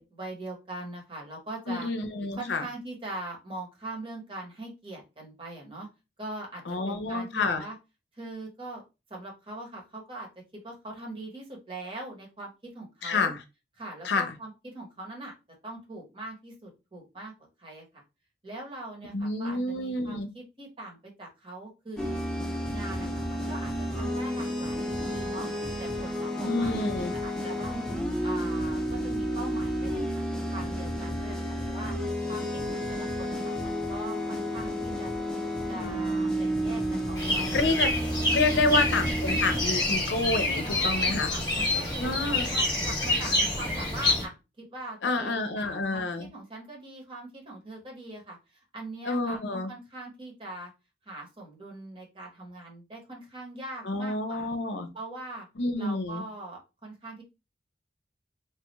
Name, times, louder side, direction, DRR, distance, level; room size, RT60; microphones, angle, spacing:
voice 1, 0.0-1.9 2.3-5.9 6.2-7.7 8.1-8.8 9.1-13.3 13.8-15.3 15.6-17.3 17.6-18.0 18.4-22.2 22.7-25.5 25.8-27.7 28.2-31.9 32.3-35.1 35.7-37.6 38.5-38.8 40.5-50.7 51.0-54.5 54.9-55.5 55.8-57.2, right 2 dB, 30° right, 0 dB, 1.0 m, -42 dB
voice 2, 1.7-2.6 6.7-7.6 13.0-13.4 14.0-14.3 19.1-20.3 26.4-27.1 37.5-37.9 38.3-41.3 42.0-42.5 45.0-46.3 49.1-49.7 53.9-54.9 55.6-56.2, left 3 dB, 80° left, 8 dB, 0.6 m, -28 dB
sound 1, 22.0-39.6, equal, 5° left, 0.6 m, -31 dB
sound 2, 37.2-44.2, left 1 dB, 20° left, 1.0 m, -27 dB
3.1 x 2.3 x 3.0 m, 0.27 s
head